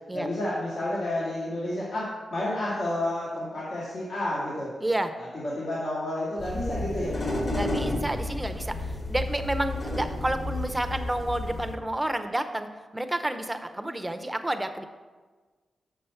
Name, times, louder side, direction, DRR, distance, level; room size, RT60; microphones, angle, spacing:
voice 1, 0.1-4.8 5.2-7.4, left 1 dB, 75° left, -8 dB, 2.1 m, -30 dB
sound 1, 6.4-11.7, left 1 dB, 35° left, 1.1 m, -31 dB
voice 2, 7.5-14.9, right 1 dB, 15° right, 8 dB, 0.6 m, -30 dB
6.9 x 6.1 x 4.4 m, 1.4 s
cardioid pair, 80°, 0 cm